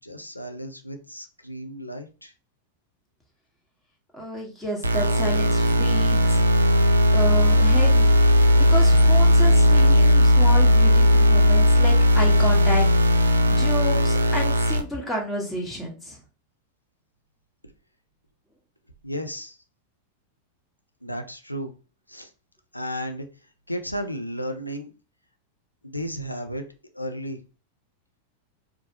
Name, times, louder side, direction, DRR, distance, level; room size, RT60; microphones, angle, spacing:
voice 1, 0.0-2.3 19.0-19.6 21.0-21.7 22.1-22.3 22.7-23.3 23.7-24.9 25.8-26.6 26.9-27.4, equal, 85° left, 5 dB, 0.5 m, -33 dB
voice 2, 4.1-6.4 7.1-8.1 8.6-12.9 13.5-16.2, equal, 10° left, -2 dB, 1.4 m, -31 dB
sound 1, 4.8-14.8, left 1 dB, 75° right, 0.4 m, -17 dB
4.6 x 2.2 x 2.9 m, 0.33 s
figure-of-eight pair, 90°, 0 cm